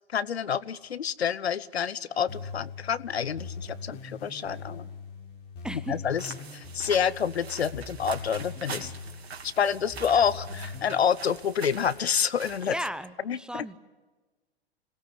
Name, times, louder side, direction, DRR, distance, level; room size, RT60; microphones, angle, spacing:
voice 1, 0.1-4.9 5.9-8.9 9.4-12.7 13.3-13.6, left 7 dB, 75° left, 18 dB, 0.9 m, -28 dB
sound 1, 2.3-11.0, left 4 dB, 30° left, 4.9 m, -41 dB
voice 2, 5.6-6.0 12.7-13.8, equal, 5° right, 14 dB, 0.7 m, -35 dB
sound 2, 6.2-12.9, right 5 dB, 75° right, 2.7 m, -43 dB
26.5 x 17.5 x 9.9 m, 1.3 s
figure-of-eight pair, 105°, 32 cm